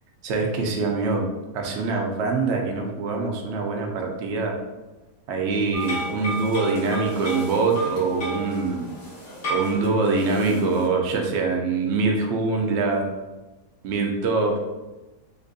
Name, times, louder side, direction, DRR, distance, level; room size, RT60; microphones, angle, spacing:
voice 1, 0.2-1.3 1.5-4.5 5.3-8.9 9.5-13.1 13.8-14.6, right 3 dB, 70° right, 2 dB, 0.6 m, -24 dB
sound 1, 5.7-10.9, right 2 dB, 50° left, 1.2 m, -32 dB
4.1 x 2.6 x 2.6 m, 1.1 s
omnidirectional pair, 1.8 m